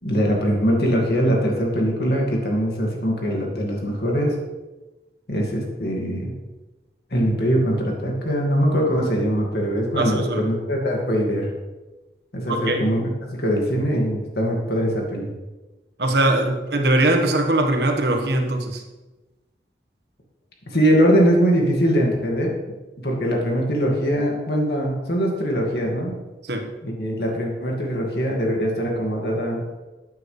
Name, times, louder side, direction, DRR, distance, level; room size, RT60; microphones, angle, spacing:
voice 1, 0.0-4.3 5.3-6.3 7.1-11.5 12.3-15.3 20.7-22.5 23.0-26.1 26.8-29.7, equal, 65° left, -1 dB, 2.2 m, -22 dB
voice 2, 10.0-10.4 12.5-12.9 16.0-18.8 26.4-26.7, right 2 dB, 70° right, 4 dB, 1.5 m, -21 dB
14.0 x 9.3 x 3.3 m, 1.1 s
head